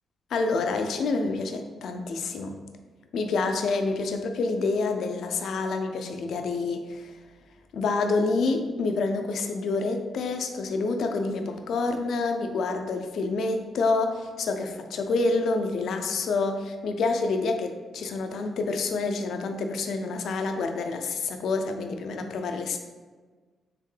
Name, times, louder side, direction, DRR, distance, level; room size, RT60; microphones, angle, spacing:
voice 1, 0.3-2.6 3.1-7.1 7.7-22.8, left 3 dB, 75° left, 5 dB, 0.4 m, -28 dB
3.6 x 3.4 x 3.2 m, 1.4 s
supercardioid pair, 60°, 0 cm